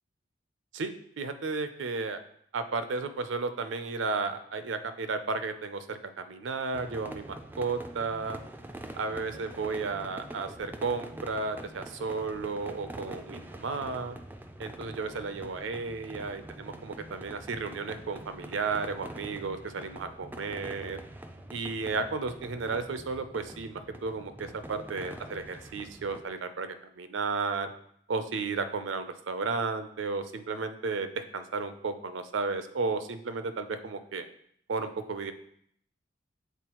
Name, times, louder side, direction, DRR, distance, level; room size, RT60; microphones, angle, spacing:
voice 1, 0.7-2.2 2.5-8.4 9.0-14.2 14.6-21.0 21.5-27.7 28.1-34.2 34.7-35.3, right 4 dB, 80° right, 9 dB, 0.5 m, -33 dB
sound 1, 6.7-26.2, right 1 dB, 10° right, 0.3 m, -45 dB
8.0 x 3.9 x 3.0 m, 0.68 s
head